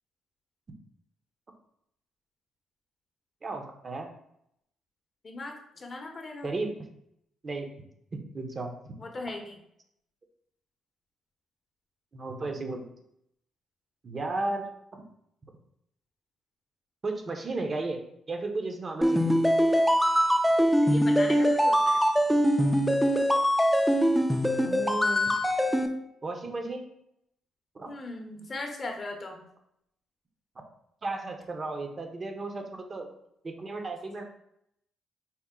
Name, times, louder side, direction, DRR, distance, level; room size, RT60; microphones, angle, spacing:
voice 1, 3.4-4.1 6.4-6.7 7.4-7.7 8.1-9.0 12.1-12.8 14.0-14.6 14.9-15.0 17.0-18.0 18.3-19.3 24.6-25.3 26.2-26.8 27.7-27.9 31.0-33.1 33.4-34.2, right 2 dB, 35° right, 4 dB, 0.7 m, -34 dB
voice 2, 5.2-6.5 9.0-9.6 20.8-22.1 27.9-29.5, left 2 dB, 35° left, 3 dB, 0.7 m, -39 dB
sound 1, 19.0-25.9, equal, ahead, 0.4 m, -23 dB
4.3 x 2.0 x 3.7 m, 0.76 s
cardioid pair, 90°, 0 cm